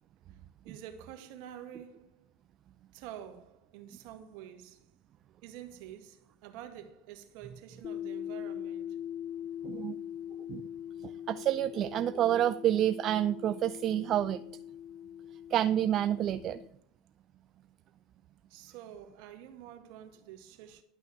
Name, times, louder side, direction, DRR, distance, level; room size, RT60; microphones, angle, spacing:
voice 1, 0.6-2.3 2.9-4.9 5.4-9.0 18.5-20.8, right 10 dB, 65° right, 1.9 m, -48 dB
sound 1, 7.8-16.7, left 10 dB, 45° left, 0.5 m, -42 dB
voice 2, 9.6-10.0 10.5-10.6 11.0-14.4 15.5-16.6, right 11 dB, 45° right, 0.5 m, -28 dB
11.5 x 6.2 x 6.6 m
hypercardioid pair, 90°, 0 cm